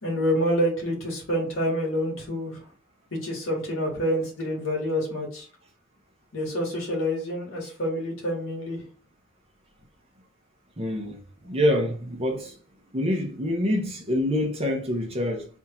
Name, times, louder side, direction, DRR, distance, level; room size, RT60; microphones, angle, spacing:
voice 1, 0.0-2.6 3.1-5.5 6.3-8.9, equal, 80° left, 1.8 m, -27 dB
voice 2, 10.8-12.6 12.9-15.5, left 1 dB, 30° right, 0.8 m, -26 dB
3.5 x 2.6 x 4.3 m
head